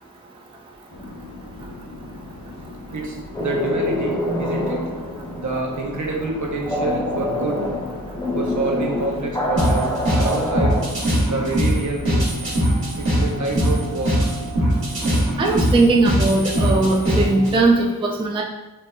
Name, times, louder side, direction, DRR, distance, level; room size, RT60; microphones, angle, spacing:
sound 1, 0.9-15.8, left 2 dB, 90° left, 0.6 m, -38 dB
voice 1, 2.9-4.9 5.4-7.7 8.3-10.8 11.3-12.3 13.0-14.3, right 2 dB, 55° right, 0 dB, 0.6 m, -27 dB
sound 2, 3.3-10.9, left 1 dB, 10° left, 0.7 m, -26 dB
sound 3, 9.6-17.6, equal, 80° right, 1.0 m, -21 dB
voice 2, 15.4-18.4, right 2 dB, 15° right, 0 dB, 0.3 m, -18 dB
4.0 x 2.1 x 2.2 m, 1.0 s
wide cardioid pair, 45°, 35 cm